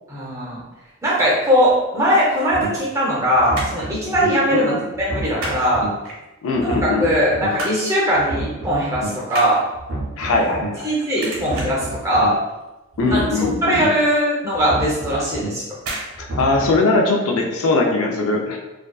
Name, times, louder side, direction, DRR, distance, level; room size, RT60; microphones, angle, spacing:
voice 1, 0.1-0.6 1.0-4.7 5.0-5.9 7.0-9.6 10.8-12.4 13.1-13.2 13.6-15.6, equal, 15° right, -6 dB, 0.6 m, -19 dB
sound 1, 2.1-3.1 3.4-3.9 4.3-4.5 4.8-5.6 6.0-6.6 7.0-7.9 8.2-8.4 8.7-10.9 11.2-11.9 12.3-12.7 12.9-13.0 13.4-13.5 13.9-14.0 14.9-15.2 15.8-16.1 16.4-16.5, right 2 dB, 75° right, 0.9 m, -32 dB
sound 2, 2.5-2.7 3.3-4.3 4.9-5.9 6.5-7.5 8.1-9.1 9.7-10.7 11.3-12.3 12.9-13.9 14.5-15.5 16.1-16.8, right 2 dB, 60° right, 0.5 m, -30 dB
voice 2, 4.5-4.8 6.4-7.1 10.2-10.9 13.0-13.8 16.2-18.6, left 3 dB, 70° left, 1 dB, 0.4 m, -20 dB
2.4 x 2.3 x 2.2 m, 1.0 s
head